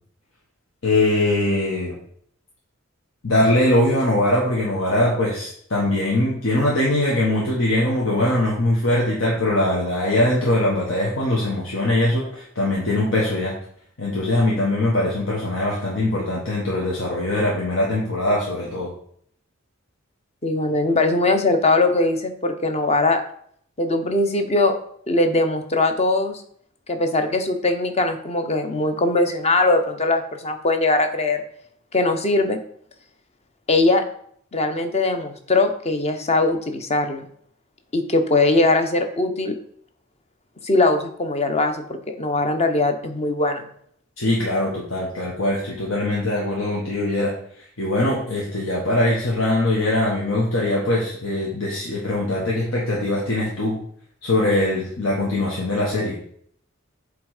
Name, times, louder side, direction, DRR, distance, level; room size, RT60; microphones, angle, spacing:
voice 1, 0.8-1.9 3.2-13.5 14.0-18.9 44.2-47.3 47.8-53.8 54.2-56.2, left 1 dB, 85° left, -4 dB, 1.5 m, -21 dB
voice 2, 20.4-23.2 23.8-24.7 25.1-26.4 26.9-31.4 31.9-32.6 33.7-34.0 34.5-37.3 37.9-39.6 40.6-43.7, left 2 dB, 30° left, 7 dB, 0.8 m, -20 dB
7.7 x 3.6 x 4.9 m, 0.63 s
head